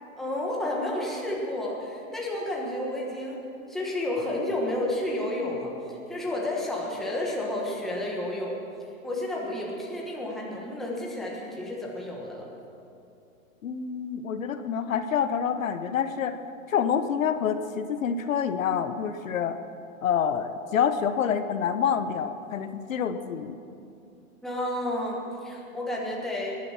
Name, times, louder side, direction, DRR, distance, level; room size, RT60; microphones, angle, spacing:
voice 1, 0.2-3.4 3.7-8.6 9.0-12.5 24.4-26.5, left 1 dB, ahead, -4 dB, 1.4 m, -31 dB
voice 2, 13.6-16.4 16.7-19.6 20.0-23.6, left 7 dB, 65° left, 9 dB, 1.0 m, -27 dB
21.0 x 11.0 x 5.9 m, 2.6 s
hypercardioid pair, 165°, 43 cm